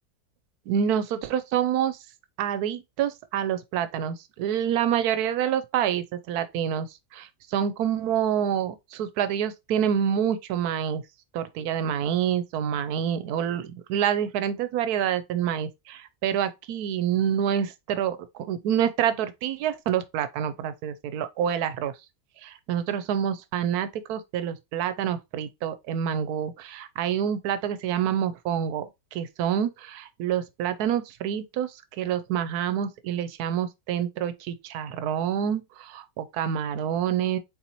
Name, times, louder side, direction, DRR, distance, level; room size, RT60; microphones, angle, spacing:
voice 1, 0.7-2.0 2.4-11.0 11.3-21.9 22.4-37.4, right 9 dB, 85° right, 1.1 m, -27 dB
4.1 x 4.1 x 2.9 m
omnidirectional pair, 1.6 m